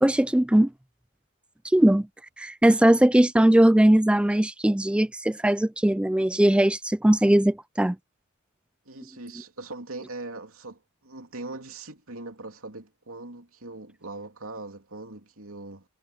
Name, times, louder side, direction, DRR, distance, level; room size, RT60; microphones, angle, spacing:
voice 1, 0.0-0.7 1.7-2.1 2.4-8.0, right 1 dB, 5° right, 0.3 m, -20 dB
voice 2, 8.8-15.8, right 2 dB, 70° right, 3.1 m, -40 dB
head